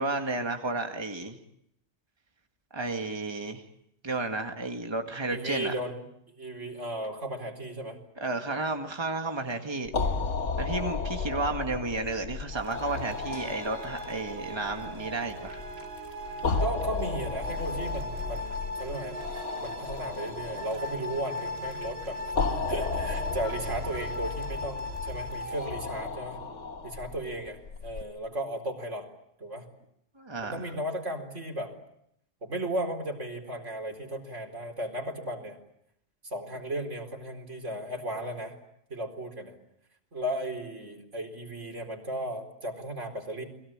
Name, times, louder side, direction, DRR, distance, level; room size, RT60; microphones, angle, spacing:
voice 1, 0.0-1.4 2.7-3.6 4.0-5.7 8.2-9.9 10.6-15.6 30.2-30.6, right 3 dB, 20° right, 4 dB, 1.9 m, -32 dB
voice 2, 5.3-6.0 6.4-8.0 16.6-19.2 19.6-22.2 22.5-26.4 26.8-29.1 29.4-29.7 30.4-31.7 32.4-35.6 36.2-38.5 38.9-39.5 40.1-43.4, right 1 dB, 80° right, 3 dB, 4.7 m, -35 dB
sound 1, 9.8-28.0, left 4 dB, 75° left, 1.8 m, -34 dB
sound 2, 12.5-25.7, left 2 dB, 55° right, 2.0 m, -39 dB
sound 3, 13.3-26.8, right 5 dB, 60° left, 3.4 m, -50 dB
30.0 x 22.0 x 8.8 m, 0.76 s
omnidirectional pair, 1.2 m